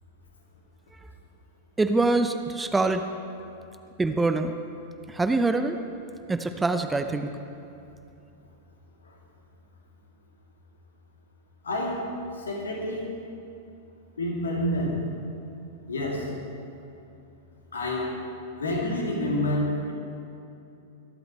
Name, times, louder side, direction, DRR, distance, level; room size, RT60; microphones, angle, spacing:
voice 1, 1.8-3.0 4.0-4.5 5.1-5.8 6.3-7.3, right 3 dB, 10° right, 8 dB, 0.7 m, -24 dB
voice 2, 11.6-12.1 12.4-13.2 14.2-15.0 15.9-16.3 17.7-18.2 18.6-19.9, left 1 dB, 75° left, -2 dB, 2.9 m, -28 dB
23.0 x 12.0 x 3.3 m, 2.7 s
figure-of-eight pair, 95°, 0 cm